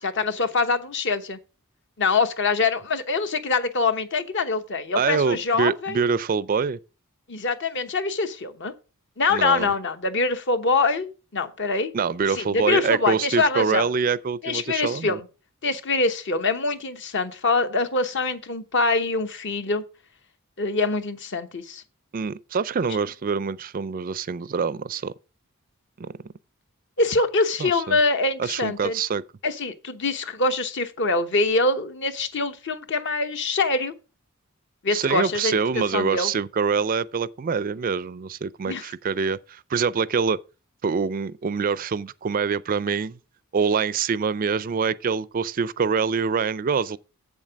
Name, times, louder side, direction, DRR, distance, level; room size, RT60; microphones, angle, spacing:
voice 1, 0.0-1.4 2.0-6.0 7.3-8.7 9.2-11.1 11.3-11.9 12.4-13.9 14.4-15.2 15.6-19.8 20.6-21.8 27.0-29.0 29.4-33.9 34.8-35.6 35.9-36.3 38.7-38.9, left 3 dB, 55° left, 1.0 m, -24 dB
voice 2, 5.0-6.8 9.3-9.7 11.9-15.2 22.1-25.1 26.0-26.1 27.6-28.0 28.4-29.2 34.9-40.4 40.8-43.2 43.5-47.0, right 5 dB, 40° right, 0.4 m, -25 dB
7.7 x 7.4 x 5.0 m
head